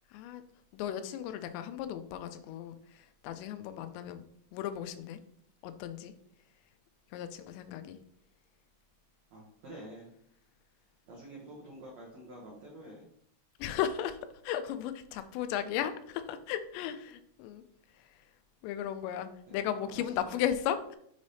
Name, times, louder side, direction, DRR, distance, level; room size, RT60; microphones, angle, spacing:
voice 1, 0.1-0.4 0.7-4.2 4.5-5.2 5.6-6.1 7.1-8.0 13.6-17.6 18.6-21.0, left 10 dB, 90° left, 10 dB, 2.8 m, -35 dB
voice 2, 9.3-10.1 11.1-13.1 19.5-20.4, right 1 dB, 85° right, -3 dB, 1.5 m, -48 dB
7.1 x 3.3 x 4.1 m, 0.68 s
omnidirectional pair, 5.0 m